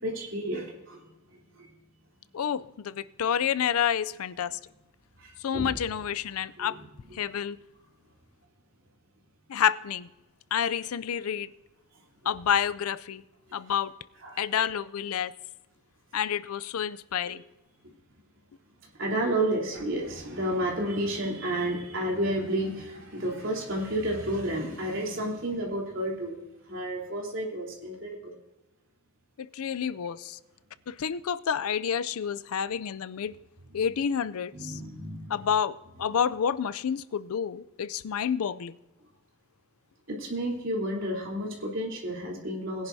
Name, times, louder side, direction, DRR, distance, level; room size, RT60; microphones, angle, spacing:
voice 1, 0.0-1.1 1.5-1.7 5.2-5.7 6.6-7.2 14.2-14.4 17.2-17.3 18.9-26.3 26.7-28.3 34.5-35.4 40.1-42.9, right 1 dB, 60° right, 3.5 m, -31 dB
voice 2, 2.3-4.6 5.4-6.8 7.1-7.6 9.5-10.1 10.5-11.5 12.3-13.2 13.5-13.9 14.4-15.3 16.1-17.4 29.4-30.4 30.9-33.3 33.7-34.8 35.3-38.7, left 8 dB, 85° left, 0.4 m, -29 dB
20.5 x 10.5 x 2.7 m
head